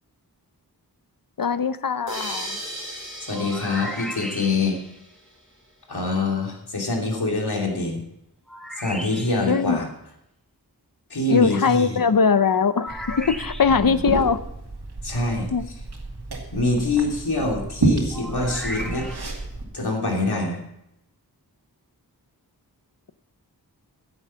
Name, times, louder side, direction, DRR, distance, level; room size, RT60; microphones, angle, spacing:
voice 1, 1.4-2.6 9.5-9.8 11.3-14.4 15.5-15.6, left 5 dB, 60° left, 13 dB, 0.7 m, -21 dB
sound 1, 2.1-5.4, right 1 dB, 30° right, 4.5 m, -37 dB
voice 2, 3.3-4.8 5.9-8.0 8.8-9.9 11.1-12.0 13.7-14.0 15.0-15.5 16.5-19.1 19.7-20.6, left 2 dB, 85° left, 0 dB, 2.8 m, -25 dB
sound 2, 3.3-4.9 8.5-9.6 12.8-14.0 18.1-19.4, equal, ahead, 1.9 m, -36 dB
Liquid, 12.9-19.6, right 3 dB, 90° right, 2.4 m, -30 dB
15.5 x 8.0 x 5.7 m, 0.82 s
wide cardioid pair, 60°, 38 cm